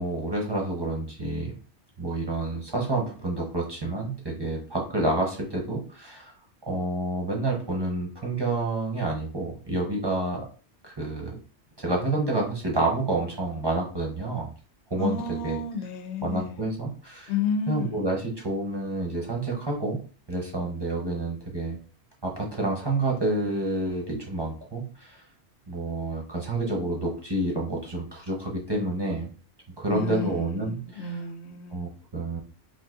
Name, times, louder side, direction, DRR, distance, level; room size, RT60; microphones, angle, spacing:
voice 1, 0.0-1.5 2.0-6.3 6.7-10.4 10.8-11.4 11.8-14.5 14.9-15.6 16.2-17.3 17.7-20.0 20.3-21.8 22.2-25.2 25.7-29.3 29.8-31.1 31.7-32.4, right 2 dB, 25° right, 0.6 m, -29 dB
voice 2, 15.0-16.7 17.3-18.0 29.9-31.9, left 4 dB, 80° left, 0.9 m, -31 dB
4.0 x 2.6 x 2.4 m
omnidirectional pair, 1.1 m